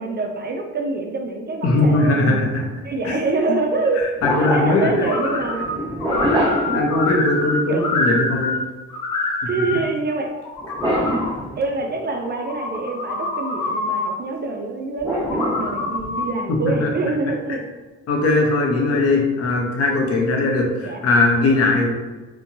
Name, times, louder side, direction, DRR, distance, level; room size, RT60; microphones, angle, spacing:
voice 1, 0.0-2.5 2.8-4.1 4.4-5.8 6.3-6.7 7.7-7.8 9.5-10.3 11.6-17.6 20.8-21.0, right 3 dB, 35° right, 2 dB, 0.4 m, -26 dB
voice 2, 1.6-2.7 3.0-3.1 4.2-5.1 6.7-8.5 16.6-16.9 18.1-21.9, left 2 dB, 55° left, 0 dB, 0.7 m, -19 dB
sound 1, 2.6-2.8 4.2-7.6 10.6-12.0 15.0-16.3, equal, 15° right, 1.0 m, -25 dB
sound 2, 5.0-5.7 6.0-8.6 8.9-9.8 10.3-11.3 12.2-14.1 15.2-16.3, left 2 dB, 90° left, 0.6 m, -25 dB
2.8 x 2.2 x 2.6 m, 1.2 s
cardioid pair, 90°, 30 cm